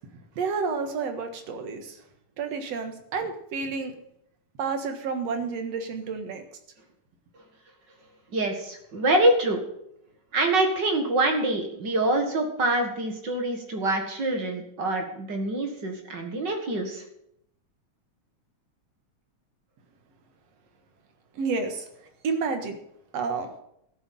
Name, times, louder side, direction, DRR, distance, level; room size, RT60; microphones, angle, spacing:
voice 1, 0.4-2.0 2.4-3.9 4.6-6.4 21.3-21.9 22.2-22.8 23.1-23.5, right 4 dB, 65° right, 6 dB, 2.6 m, -30 dB
voice 2, 8.3-9.6 10.3-17.0, right 2 dB, 40° right, 4 dB, 2.2 m, -25 dB
12.5 x 7.8 x 7.6 m, 0.75 s
omnidirectional pair, 3.3 m